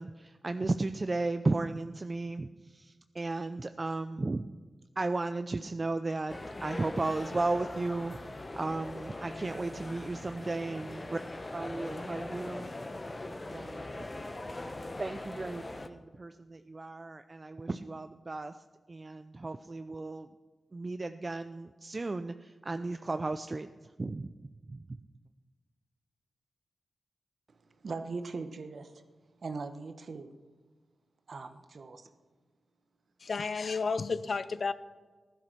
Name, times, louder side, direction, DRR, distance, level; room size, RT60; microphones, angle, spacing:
voice 1, 0.0-4.4 5.0-11.2 11.5-12.7 13.2-14.0 15.0-18.6 18.9-20.3 20.7-23.7 24.0-24.3 24.7-25.0, right 2 dB, 35° right, 0.4 m, -35 dB
sound 1, 6.3-15.9, left 2 dB, 25° left, 1.0 m, -41 dB
voice 2, 27.8-29.0 29.4-30.3 31.3-32.1, right 4 dB, 60° right, 1.0 m, -40 dB
voice 3, 33.2-34.7, left 4 dB, 55° left, 0.5 m, -32 dB
15.0 x 12.0 x 6.0 m
wide cardioid pair, 90°, 0 cm